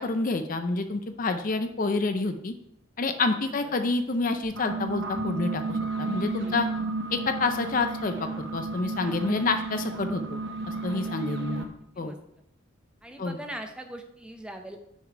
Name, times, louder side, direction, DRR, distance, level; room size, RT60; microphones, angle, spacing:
voice 1, 0.0-2.5 3.0-6.7 7.1-10.4 10.8-11.7 12.0-12.1 13.2-13.4, left 3 dB, 40° left, 8 dB, 0.5 m, -28 dB
sound 1, 4.4-11.7, right 3 dB, 55° right, 0.9 m, -33 dB
voice 2, 6.2-6.6 9.0-9.4 11.2-11.7 11.9-12.2 13.0-14.8, right 1 dB, 5° right, 5 dB, 0.6 m, -42 dB
6.4 x 5.3 x 4.9 m, 0.75 s
head